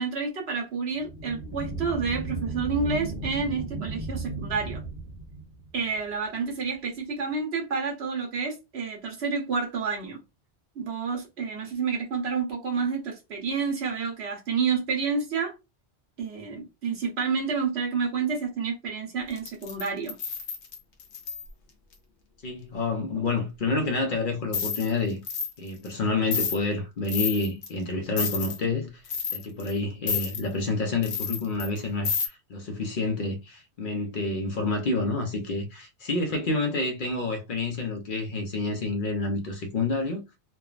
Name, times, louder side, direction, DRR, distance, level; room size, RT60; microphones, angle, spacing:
voice 1, 0.0-4.8 5.7-10.2 10.7-15.5 16.2-20.2, right 5 dB, 65° right, 1.2 m, -29 dB
sound 1, 1.0-6.0, right 3 dB, ahead, 1.1 m, -35 dB
sound 2, 19.4-21.5 24.5-24.9 25.3-25.5 25.9-26.0 26.3-26.6 27.1-27.7 28.2-28.6 29.1-29.7 30.1-30.4 31.0-31.8 32.0-32.3, left 6 dB, 80° left, 0.9 m, -30 dB
voice 2, 22.4-25.2 25.6-29.0 29.3-40.2, left 3 dB, 55° left, 0.7 m, -28 dB
3.3 x 2.2 x 2.4 m
omnidirectional pair, 1.2 m